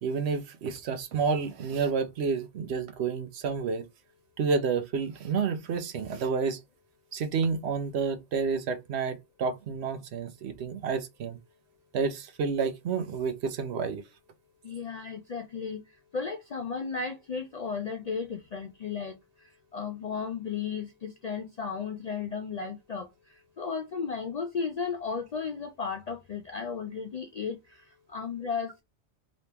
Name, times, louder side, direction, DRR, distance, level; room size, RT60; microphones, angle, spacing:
voice 1, 0.0-3.8 4.4-6.6 7.1-11.4 11.9-14.0, right 5 dB, 70° right, 0.9 m, -30 dB
voice 2, 14.6-15.8 16.1-19.2 19.7-23.1 23.6-27.6 28.1-28.8, left 5 dB, 60° left, 0.4 m, -34 dB
3.4 x 3.0 x 2.8 m
omnidirectional pair, 1.2 m